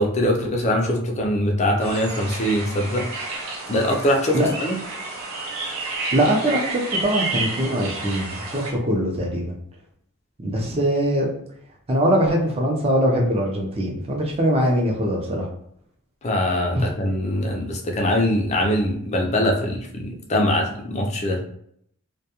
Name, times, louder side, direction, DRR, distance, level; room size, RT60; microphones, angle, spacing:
voice 1, 0.0-3.1 3.7-4.8 16.2-21.4, left 1 dB, 30° left, 1 dB, 0.4 m, -22 dB
sound 1, 1.8-8.7, right 3 dB, 75° right, 0.7 m, -30 dB
voice 2, 6.1-9.5 10.4-11.3 11.9-15.5 16.7-16.9, equal, 25° right, -1 dB, 0.5 m, -22 dB
2.2 x 2.2 x 2.8 m, 0.68 s
head